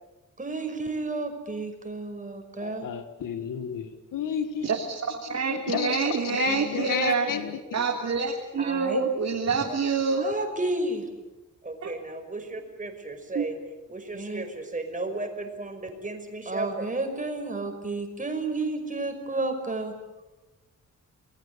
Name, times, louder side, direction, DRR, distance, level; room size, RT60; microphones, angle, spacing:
voice 1, 0.4-2.9 8.6-9.0 9.5-9.8 10.2-11.1 11.7-13.5 13.9-19.9, right 2 dB, 25° right, 5 dB, 5.5 m, -32 dB
voice 2, 2.6-4.7 5.5-7.6, left 8 dB, 90° left, 9 dB, 1.8 m, -31 dB
voice 3, 4.6-5.0 5.3-7.3 7.7-10.2 13.3-13.4, right 5 dB, 55° right, -1 dB, 3.4 m, -26 dB
29.0 x 21.0 x 8.7 m, 1.1 s
wide cardioid pair, 120°, 31 cm